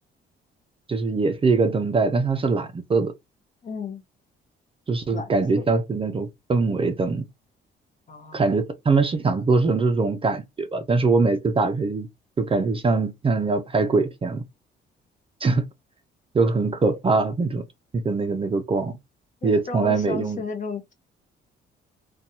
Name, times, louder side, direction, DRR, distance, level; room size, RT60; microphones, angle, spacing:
voice 1, 0.9-3.1 4.9-7.2 8.3-12.1 12.4-14.4 15.4-15.6 16.3-17.6 17.9-19.0 19.4-20.4, right 4 dB, 30° right, 0.4 m, -22 dB
voice 2, 3.6-4.0 5.1-5.4 8.1-8.4 19.4-20.9, left 5 dB, 40° left, 0.8 m, -34 dB
2.6 x 2.2 x 2.8 m
cardioid pair, 90°, 20 cm